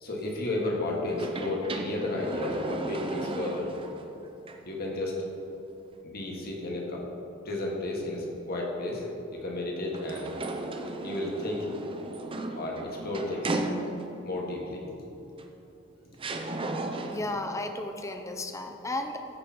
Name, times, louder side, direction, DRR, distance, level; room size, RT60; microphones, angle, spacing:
voice 1, 0.0-3.7 4.1-4.2 4.6-5.2 6.0-7.0 7.4-9.0 9.3-10.3 11.0-11.6 12.5-13.6 14.2-14.8, left 2 dB, 50° left, -1 dB, 1.6 m, -32 dB
sound 1, 1.1-4.0 4.5-4.6 9.9-14.3 15.4-15.5 16.2-17.4, right 2 dB, 25° right, 0.6 m, -35 dB
voice 2, 17.1-19.2, left 2 dB, 15° left, 6 dB, 0.6 m, -34 dB
14.5 x 5.0 x 4.3 m, 2.9 s
head